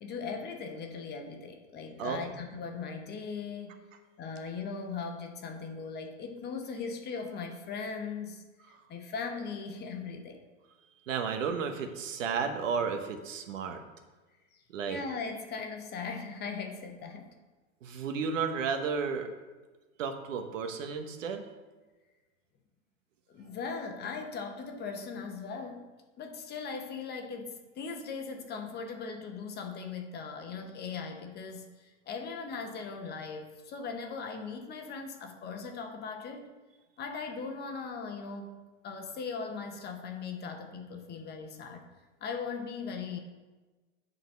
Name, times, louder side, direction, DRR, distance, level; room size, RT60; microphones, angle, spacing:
voice 1, 0.0-3.8 4.2-10.4 14.9-17.3 23.3-25.9 26.2-36.5 37.0-38.6 38.8-41.9 42.2-43.2, left 5 dB, 25° left, 4 dB, 0.9 m, -39 dB
voice 2, 11.1-13.8 14.7-15.0 17.8-19.3 20.0-21.4, right 6 dB, 75° right, 6 dB, 1.1 m, -33 dB
8.0 x 4.1 x 5.3 m, 1.2 s
hypercardioid pair, 125°, 38 cm